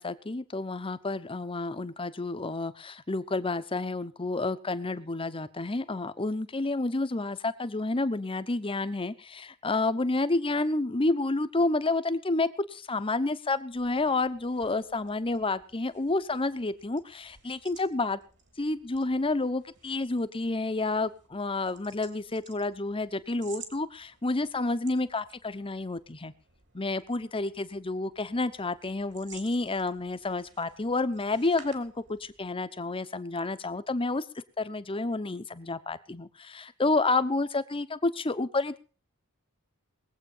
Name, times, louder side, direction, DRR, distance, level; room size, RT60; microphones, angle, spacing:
voice 1, 0.0-18.2 18.6-26.3 26.7-34.2 34.6-38.8, left 2 dB, 25° left, 12 dB, 0.9 m, -30 dB
sound 1, 13.6-32.5, right 6 dB, 55° right, 2.9 m, -55 dB
21.0 x 8.1 x 5.6 m, 0.35 s
head